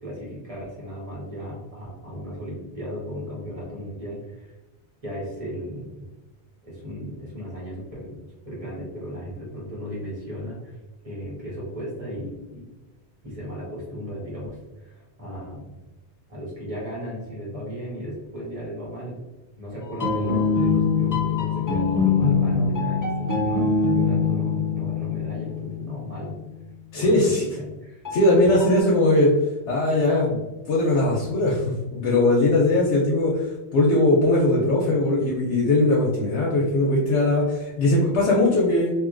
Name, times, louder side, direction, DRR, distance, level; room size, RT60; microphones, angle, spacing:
voice 1, 0.0-4.5 5.0-6.1 6.6-8.2 8.5-10.8 11.0-12.7 13.2-15.7 16.3-19.2 19.6-26.4 26.9-28.2, equal, 30° right, -6 dB, 1.4 m, -35 dB
sound 1, 19.9-26.6 28.0-28.8, left 4 dB, 35° left, 0.3 m, -24 dB
voice 2, 26.9-27.4 28.1-29.3 29.7-38.9, left 2 dB, 85° left, -4 dB, 0.9 m, -20 dB
2.9 x 2.6 x 2.5 m, 1.1 s
omnidirectional pair, 1.1 m